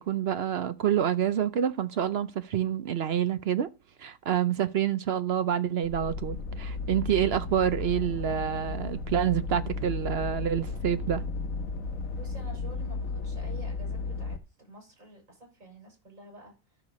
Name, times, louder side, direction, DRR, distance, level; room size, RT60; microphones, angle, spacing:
voice 1, 0.0-3.7 4.0-11.2, right 9 dB, 60° right, 0.8 m, -27 dB
sound 1, 5.8-14.4, left 4 dB, 90° left, 1.4 m, -34 dB
voice 2, 12.2-16.5, right 1 dB, 85° right, 5.8 m, -49 dB
13.5 x 6.5 x 4.2 m
omnidirectional pair, 1.4 m